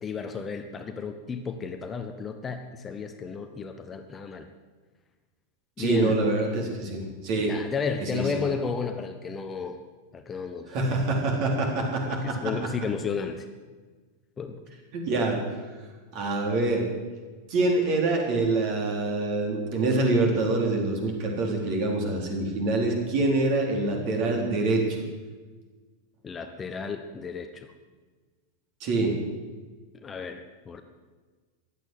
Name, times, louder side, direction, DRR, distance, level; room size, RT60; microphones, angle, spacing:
voice 1, 0.0-4.5 5.8-6.2 7.5-9.8 10.1-10.7 12.0-13.5 14.4-14.6 26.2-27.7 29.9-30.8, left 5 dB, 20° left, 7 dB, 1.0 m, -33 dB
voice 2, 5.8-7.5 8.0-8.3 10.7-12.4 14.9-15.4 16.1-16.8 17.5-25.0 28.8-29.2, right 2 dB, 40° right, 1 dB, 3.9 m, -25 dB
15.5 x 11.5 x 7.8 m, 1.4 s
figure-of-eight pair, 90°, 0 cm